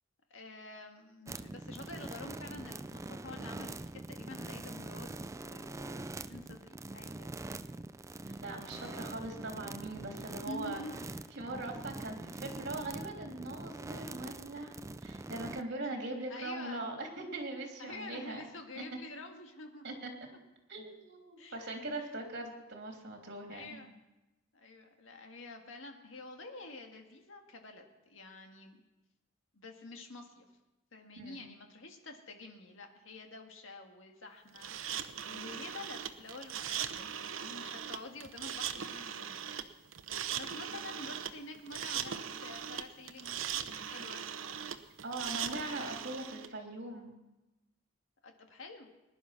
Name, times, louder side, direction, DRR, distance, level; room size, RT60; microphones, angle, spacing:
voice 1, 0.3-7.3 8.8-9.4 10.4-11.1 16.3-16.8 17.8-19.9 21.4-21.7 23.5-23.9 24.5-28.8 29.5-30.5 30.9-39.4 40.4-43.4 43.7-44.2 45.5-46.0 48.2-48.9, left 2 dB, 75° left, 3 dB, 1.8 m, -48 dB
sound 1, 1.3-15.6, right 2 dB, 15° right, 0.4 m, -44 dB
voice 2, 8.2-10.8 11.3-18.4 18.7-19.0 19.8-20.1 20.7-23.8 31.2-31.5 45.0-47.1, right 2 dB, 60° right, 2 dB, 3.3 m, -41 dB
sound 2, 34.6-46.5, right 8 dB, 85° right, 0.9 m, -39 dB
20.0 x 11.0 x 5.8 m, 1.0 s
head